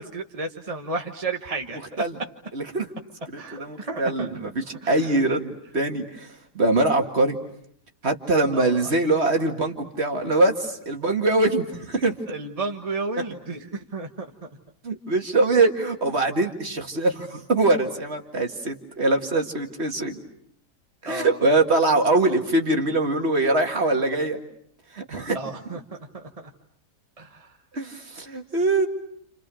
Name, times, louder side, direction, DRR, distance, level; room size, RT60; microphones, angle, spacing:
voice 1, 0.0-2.0 3.4-3.6 3.9-4.3 4.8-5.2 8.5-8.9 12.3-14.3 21.0-21.4 25.3-26.5 27.2-27.5, right 3 dB, 25° right, 3 dB, 1.3 m, -32 dB
voice 2, 2.5-2.9 3.3-7.4 8.0-12.2 14.8-20.2 21.0-24.4 24.9-25.4 27.7-28.9, right 2 dB, 40° right, 4 dB, 2.2 m, -23 dB
29.5 x 29.0 x 6.3 m, 0.69 s
omnidirectional pair, 1.7 m